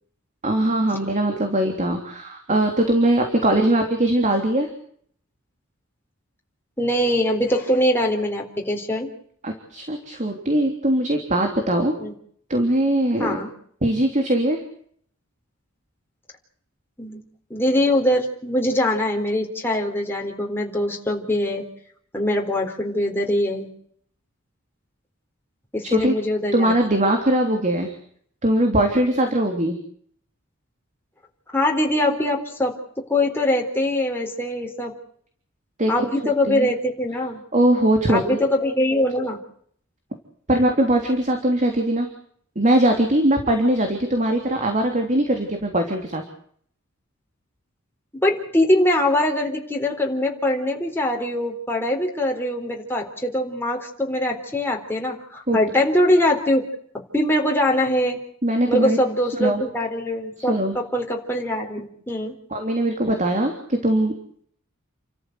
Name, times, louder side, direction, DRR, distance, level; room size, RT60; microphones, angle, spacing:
voice 1, 0.4-4.7 9.4-12.0 12.5-13.4 13.8-14.6 25.8-26.1 26.5-27.9 28.4-29.8 35.8-36.7 37.5-38.4 40.5-42.1 42.5-46.2 55.5-55.6 58.4-59.0 59.4-59.6 60.5-60.7 62.5-64.1, right 1 dB, 35° right, 4 dB, 3.4 m, -21 dB
voice 2, 6.8-9.1 12.0-12.1 13.2-13.5 17.0-17.2 17.5-21.6 22.1-23.7 25.7-26.9 31.5-34.9 35.9-37.4 38.1-39.4 48.1-56.6 57.1-58.2 58.7-62.3, left 1 dB, 10° left, 1 dB, 4.0 m, -22 dB
29.5 x 14.0 x 8.1 m, 0.63 s
head